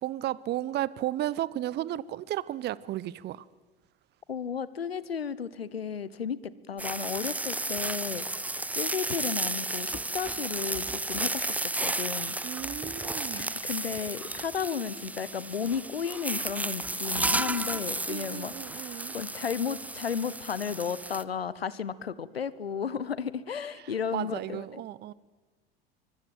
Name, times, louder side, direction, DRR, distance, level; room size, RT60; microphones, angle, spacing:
voice 1, 0.0-3.5 12.4-13.5 18.1-19.1 23.8-25.1, right 13 dB, 35° right, 21 dB, 0.8 m, -34 dB
voice 2, 4.3-12.4 13.3-24.8, left 7 dB, 85° left, 18 dB, 1.1 m, -34 dB
sound 1, 6.8-21.2, right 2 dB, 5° right, 0.9 m, -33 dB
25.0 x 23.5 x 7.8 m, 1.2 s
figure-of-eight pair, 80°, 30 cm